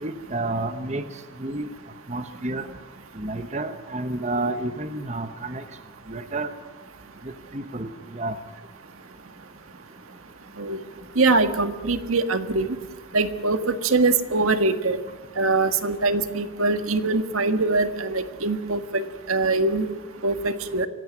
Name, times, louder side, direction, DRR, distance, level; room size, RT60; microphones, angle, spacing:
voice 1, 0.0-1.0 1.4-1.7 2.1-2.7 3.2-5.6 6.1-6.5 7.5-7.9 8.1-8.3, right 2 dB, 30° right, 9 dB, 1.2 m, -30 dB
voice 2, 11.1-12.8 13.1-15.0 15.4-19.9 20.2-20.9, right 3 dB, 80° right, 9 dB, 1.7 m, -23 dB
25.0 x 17.0 x 9.7 m, 1.2 s
head